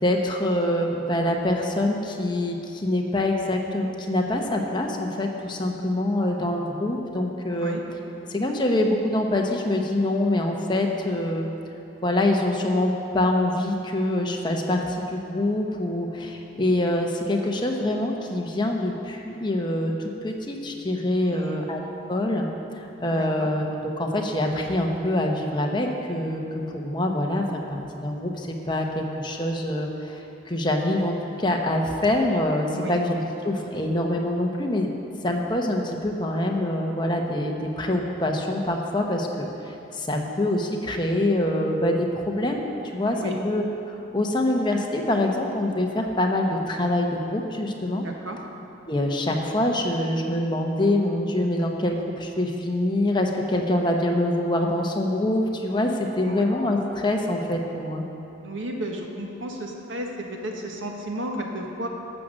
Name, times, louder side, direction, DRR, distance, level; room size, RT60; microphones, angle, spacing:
voice 1, 0.0-7.8 8.3-11.5 12.0-21.8 22.1-22.5 22.7-23.7 24.0-34.9 35.2-42.7 42.9-48.1 48.9-58.0, left 1 dB, 25° left, 1 dB, 1.0 m, -25 dB
voice 2, 21.2-21.6 23.1-23.5 32.7-33.0 43.1-43.4 48.0-48.4 56.2-56.4 58.4-61.9, right 1 dB, 85° right, 1 dB, 1.4 m, -33 dB
12.5 x 7.6 x 6.3 m, 2.8 s
head